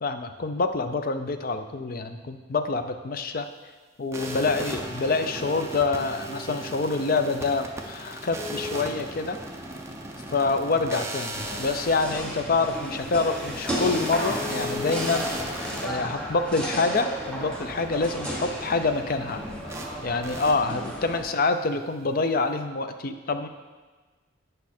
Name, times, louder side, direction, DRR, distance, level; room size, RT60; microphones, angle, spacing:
voice 1, 0.0-3.5 4.0-9.4 10.3-15.2 15.8-19.4 20.0-23.5, left 3 dB, 45° left, 8 dB, 0.5 m, -26 dB
sound 1, 4.1-15.9 19.7-19.9 20.2-20.5, equal, 15° right, 0.6 m, -36 dB
sound 2, 11.3-21.2, equal, 5° left, 1.1 m, -33 dB
8.2 x 5.3 x 4.3 m, 1.3 s
head